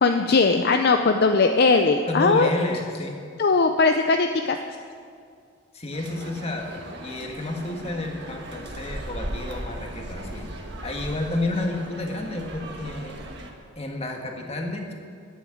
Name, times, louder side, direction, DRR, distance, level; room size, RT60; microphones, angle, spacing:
voice 1, 0.0-2.5 3.4-4.6, left 4 dB, 55° left, 6 dB, 0.5 m, -19 dB
voice 2, 2.1-3.2 5.7-13.2 13.7-14.9, left 2 dB, 30° left, 2 dB, 1.6 m, -30 dB
sound 1, 5.9-13.5, right 1 dB, 60° right, 1.5 m, -38 dB
11.0 x 9.4 x 8.4 m, 2.2 s
head